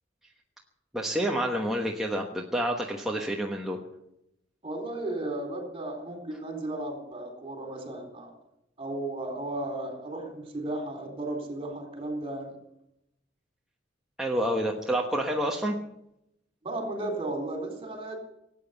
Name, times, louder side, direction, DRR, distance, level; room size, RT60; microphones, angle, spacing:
voice 1, 0.9-3.8 14.2-15.8, equal, ahead, -1 dB, 1.3 m, -28 dB
voice 2, 4.6-8.3 8.8-12.6 16.6-18.2, right 2 dB, 30° right, 3 dB, 3.9 m, -34 dB
18.5 x 9.1 x 8.2 m, 0.83 s
head